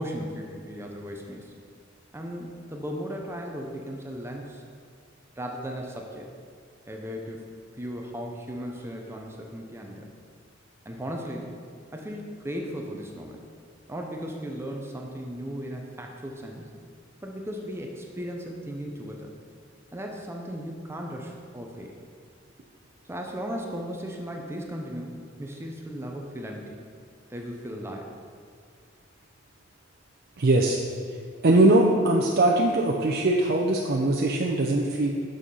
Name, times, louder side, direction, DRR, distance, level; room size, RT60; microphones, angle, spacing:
voice 1, 0.0-1.5 2.1-4.6 5.4-6.3 6.9-7.4 7.8-10.0 10.8-11.5 11.9-13.4 13.9-16.6 17.2-19.3 19.9-21.9 23.0-26.8 27.3-28.1, equal, 15° right, 1 dB, 0.7 m, -36 dB
voice 2, 30.4-30.8 31.4-35.1, right 2 dB, 55° right, 0 dB, 0.6 m, -21 dB
6.5 x 6.2 x 5.4 m, 2.2 s
head